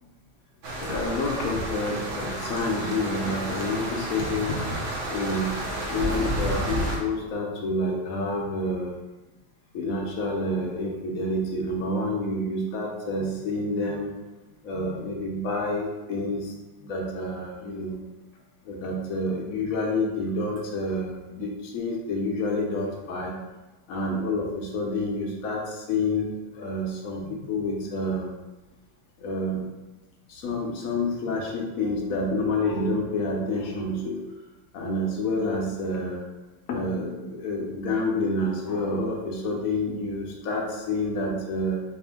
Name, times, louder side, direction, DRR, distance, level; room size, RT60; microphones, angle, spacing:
sound 1, 0.6-7.0, right 1 dB, 60° right, 0.8 m, -31 dB
voice 1, 0.8-4.8 5.1-5.5 5.9-8.9 9.7-14.1 14.6-16.5 16.8-18.0 18.6-23.4 23.9-28.3 29.2-29.7 30.3-34.2 34.7-36.2 36.7-41.8, left 2 dB, 60° left, 0 dB, 1.0 m, -28 dB
4.2 x 2.6 x 3.6 m, 1.1 s
omnidirectional pair, 2.0 m